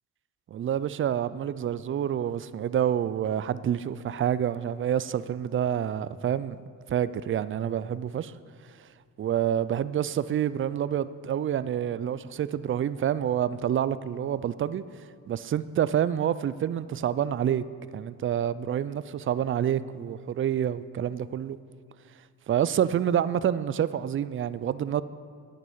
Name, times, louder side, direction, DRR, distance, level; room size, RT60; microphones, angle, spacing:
voice 1, 0.5-6.6 6.9-8.3 8.8-8.9 9.2-14.8 15.3-17.6 17.9-21.6 22.5-25.0, right 9 dB, 35° right, 0.4 m, -28 dB
9.4 x 8.8 x 5.5 m
cardioid pair, 80°, 38 cm